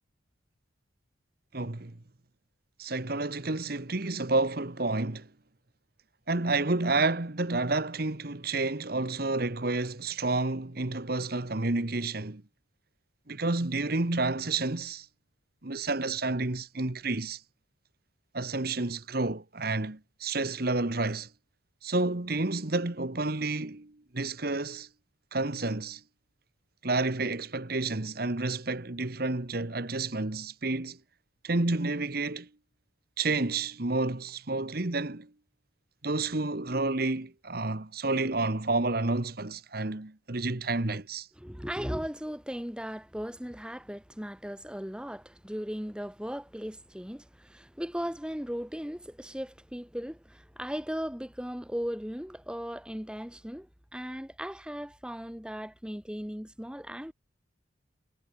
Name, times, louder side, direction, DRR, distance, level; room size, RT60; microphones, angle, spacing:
voice 1, 1.5-1.9 2.8-5.3 6.3-12.4 13.3-15.1 15.6-17.4 18.3-21.3 21.8-24.9 25.3-26.0 26.8-31.0 31.4-32.5 33.2-35.3 36.0-41.3, right 2 dB, 50° right, 1.3 m, -30 dB
voice 2, 41.4-57.1, equal, 5° right, 1.3 m, -37 dB
head